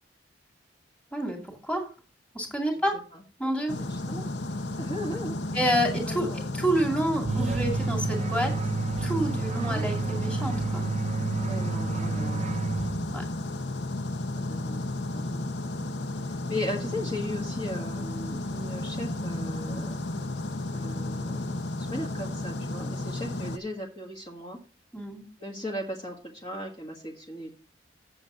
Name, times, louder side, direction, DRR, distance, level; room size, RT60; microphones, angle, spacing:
voice 1, 1.1-1.9 2.3-3.0 3.4-3.7 5.5-8.5 9.0-10.9 13.1-13.2 24.9-25.2, right 1 dB, 5° left, 2 dB, 2.4 m, -28 dB
sound 1, 3.7-23.6, left 2 dB, 65° left, 0.8 m, -33 dB
voice 2, 3.8-4.3 4.8-5.6 6.1-6.5 9.6-9.8 11.3-12.6 14.4-14.9 15.1-15.5 16.2-20.0 20.7-24.6 25.4-27.5, left 1 dB, 30° left, -1 dB, 1.6 m, -37 dB
sound 2, 7.3-13.4, right 4 dB, 35° right, 0.5 m, -30 dB
7.9 x 7.4 x 5.5 m, 0.36 s
head